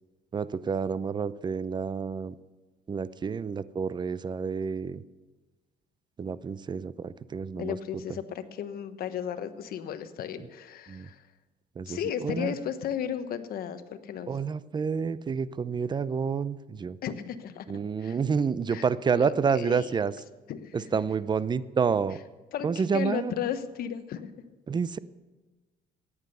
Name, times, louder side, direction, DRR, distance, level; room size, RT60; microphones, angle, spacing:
voice 1, 0.3-2.3 2.9-5.0 6.2-7.8 10.9-11.1 11.8-12.0 12.2-12.5 14.3-17.0 17.7-20.1 20.9-22.2 22.6-23.3 24.7-25.0, right 6 dB, 25° right, 17 dB, 0.5 m, -29 dB
voice 2, 7.6-11.2 11.9-14.3 17.0-17.7 18.0-18.2 18.7-20.0 20.5-21.0 22.5-24.3, left 9 dB, 60° left, 10 dB, 1.1 m, -35 dB
14.0 x 9.8 x 6.7 m, 1.2 s
cardioid pair, 110°, 17 cm